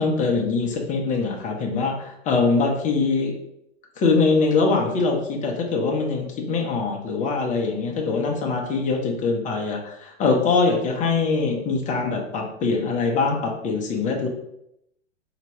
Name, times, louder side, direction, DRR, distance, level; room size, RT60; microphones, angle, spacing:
voice 1, 0.0-3.3 4.0-14.3, left 4 dB, 20° left, 0 dB, 0.7 m, -23 dB
4.2 x 2.9 x 2.9 m, 0.79 s
hypercardioid pair, 110°, 36 cm